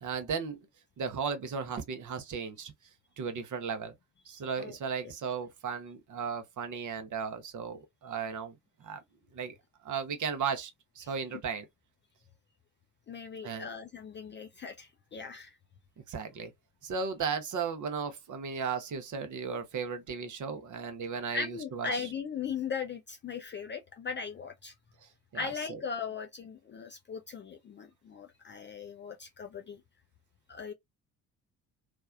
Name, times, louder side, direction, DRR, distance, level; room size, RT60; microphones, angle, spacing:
voice 1, 0.0-0.6 1.0-2.7 3.2-3.9 4.3-9.0 9.3-9.5 9.8-10.7 11.0-11.7 13.4-13.7 16.1-16.5 16.8-22.1 25.3-25.8, right 6 dB, 40° right, 0.8 m, -35 dB
voice 2, 13.1-15.6 21.3-24.7 25.3-29.8 30.5-30.7, left 5 dB, 25° left, 0.4 m, -38 dB
3.3 x 2.2 x 2.3 m
figure-of-eight pair, 50°, 48 cm